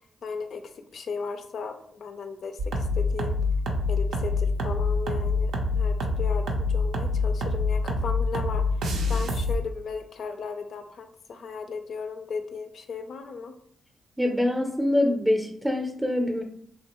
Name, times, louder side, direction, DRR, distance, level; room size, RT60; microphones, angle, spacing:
voice 1, 0.2-3.4 3.9-8.6 9.1-13.5, left 5 dB, 65° left, 7 dB, 0.3 m, -36 dB
sound 1, 2.6-9.6, left 3 dB, 85° right, 0.4 m, -26 dB
voice 2, 14.2-16.4, left 1 dB, 10° right, 2 dB, 0.5 m, -24 dB
2.9 x 2.2 x 2.9 m, 0.65 s
supercardioid pair, 55°, 0 cm